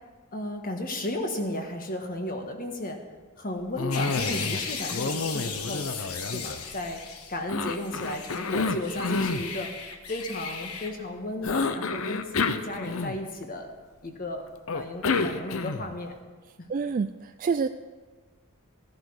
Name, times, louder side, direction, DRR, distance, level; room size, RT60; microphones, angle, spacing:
voice 1, 0.3-3.0 3.4-7.0 7.3-9.7 10.1-13.7 14.0-16.1 16.6-16.7, left 1 dB, 40° left, 4 dB, 1.5 m, -34 dB
Cough, 3.8-4.6 4.9-6.9 7.5-9.5 11.4-13.4 14.7-16.0, left 4 dB, 65° left, 0.7 m, -29 dB
sound 1, 3.9-7.4 7.7-10.9, left 6 dB, 85° left, 1.3 m, -36 dB
voice 2, 16.7-17.7, right 5 dB, 40° right, 8 dB, 0.3 m, -27 dB
14.5 x 10.5 x 4.8 m, 1.3 s
head